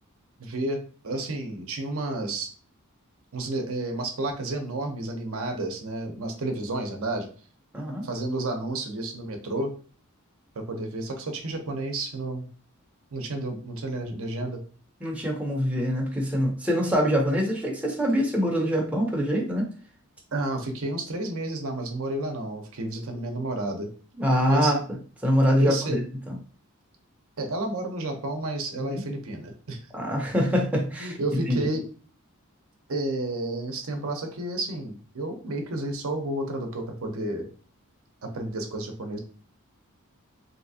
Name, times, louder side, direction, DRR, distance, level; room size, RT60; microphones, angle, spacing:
voice 1, 0.4-0.8 1.0-2.5 3.3-7.3 8.0-9.7 10.5-12.5 13.1-14.6 20.3-23.9 24.5-24.7 25.6-26.0 27.4-29.8 31.0-31.8 32.9-37.5 38.2-39.2, right 2 dB, 65° right, 4 dB, 0.7 m, -31 dB
voice 2, 7.7-8.0 15.0-19.7 24.2-24.8 25.2-26.4 28.8-29.0 29.9-31.2 31.5-31.6, equal, 5° right, -1 dB, 0.6 m, -24 dB
3.3 x 2.7 x 2.7 m, 0.40 s
head